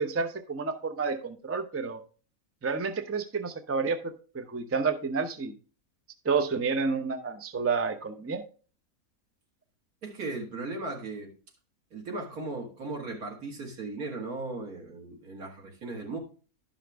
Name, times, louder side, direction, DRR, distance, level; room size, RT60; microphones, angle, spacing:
voice 1, 0.0-2.0 2.6-4.0 4.3-5.5 6.2-8.4, right 5 dB, 20° right, 0.4 m, -29 dB
voice 2, 10.0-11.3 11.9-16.2, right 3 dB, 85° right, 2.4 m, -37 dB
11.5 x 5.8 x 3.4 m
omnidirectional pair, 1.5 m